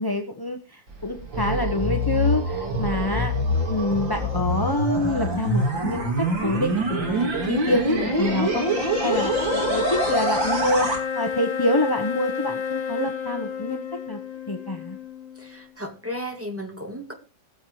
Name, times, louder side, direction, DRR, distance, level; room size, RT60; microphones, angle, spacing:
voice 1, 0.0-3.3 3.7-8.7 9.0-10.9 11.1-14.2 14.5-15.0, left 1 dB, 20° left, 4 dB, 0.7 m, -26 dB
sound 1, 0.9-11.0, right 1 dB, 70° right, 3.4 m, -25 dB
sound 2, 6.3-15.7, left 6 dB, 60° left, 0.4 m, -31 dB
voice 2, 15.4-17.1, equal, 5° right, 3 dB, 2.1 m, -34 dB
18.0 x 7.5 x 4.8 m, 0.34 s
omnidirectional pair, 2.1 m